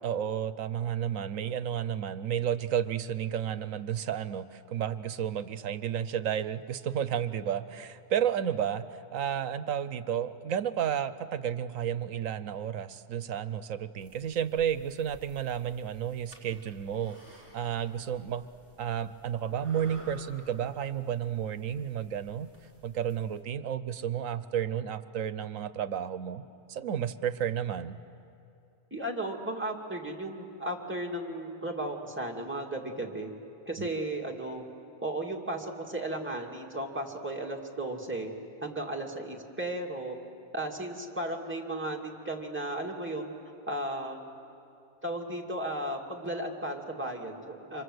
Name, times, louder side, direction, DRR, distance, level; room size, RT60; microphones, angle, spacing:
voice 1, 0.0-18.4 18.8-22.5 22.8-28.0 33.8-33.9, right 9 dB, 75° right, 13 dB, 1.2 m, -32 dB
sound 1, 14.0-23.4, right 2 dB, 10° left, 5.3 m, -55 dB
voice 2, 28.9-33.3 33.7-34.6 35.0-38.3 38.6-40.2 40.5-43.3 43.7-44.3 45.0-47.8, right 1 dB, 10° right, -1 dB, 2.5 m, -35 dB
28.5 x 26.0 x 8.0 m, 2.6 s
omnidirectional pair, 1.4 m